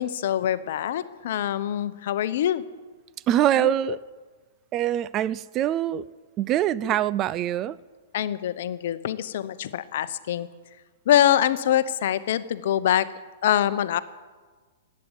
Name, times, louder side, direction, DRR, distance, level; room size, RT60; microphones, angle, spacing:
voice 1, 0.0-2.6 3.6-4.0 6.8-7.0 8.1-10.5 11.1-13.1 13.4-14.0, left 11 dB, 60° left, 0.8 m, -24 dB
voice 2, 3.3-4.0 4.7-6.1 6.4-7.8, right 12 dB, 30° right, 0.4 m, -24 dB
13.5 x 9.5 x 9.7 m
hypercardioid pair, 130°, 0 cm